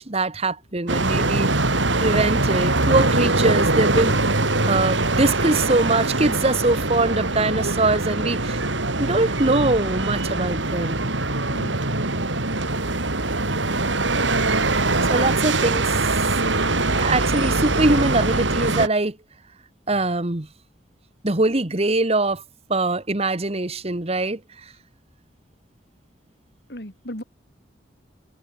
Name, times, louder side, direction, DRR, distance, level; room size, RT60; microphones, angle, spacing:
voice 1, 0.0-1.5 2.0-4.1 4.7-8.6 9.0-11.1 15.1-16.2 16.5-19.2 19.9-20.5 21.2-22.4 22.7-24.4, right 2 dB, 35° right, 1.5 m, -22 dB
sound 1, 0.9-18.9, right 2 dB, 90° right, 4.5 m, -22 dB
voice 2, 11.5-11.8 26.7-27.2, equal, 60° left, 6.8 m, -35 dB
head